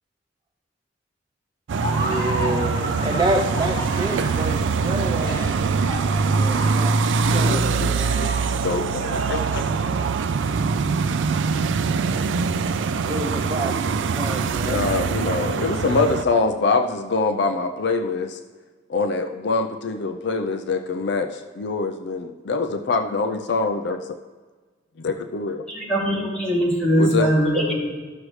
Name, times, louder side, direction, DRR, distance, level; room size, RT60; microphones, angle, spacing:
Laughter, 1.7-10.0, right 1 dB, 20° left, 2.7 m, -34 dB
sound 1, 1.7-16.2, right 4 dB, 80° right, 0.4 m, -23 dB
voice 1, 1.8-5.4 6.3-8.2 8.6-8.8 13.1-14.8, right 1 dB, 20° right, 0.6 m, -28 dB
voice 2, 7.4-8.3 8.6-9.9 14.7-18.4 18.9-24.2 25.0-25.7 27.0-27.3, left 3 dB, 65° left, 0.5 m, -24 dB
voice 3, 25.7-27.8, equal, 5° left, 2.5 m, -21 dB
13.5 x 6.3 x 3.2 m
head